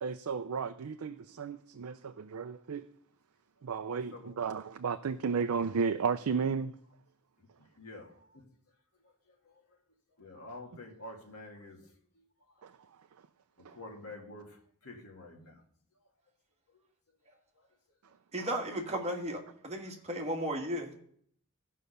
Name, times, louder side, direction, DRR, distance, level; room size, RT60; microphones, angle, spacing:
voice 1, 0.0-2.9 3.6-6.7 12.6-12.7 13.6-13.8 18.4-18.5, right 5 dB, 70° right, 0.4 m, -33 dB
voice 2, 3.9-4.4 7.8-8.4 9.5-9.6 10.2-11.8 13.7-14.6 14.8-15.6 17.3-17.4, left 2 dB, 80° left, 2.1 m, -48 dB
voice 3, 18.3-21.0, right 1 dB, 30° right, 1.7 m, -35 dB
14.5 x 5.5 x 6.5 m
head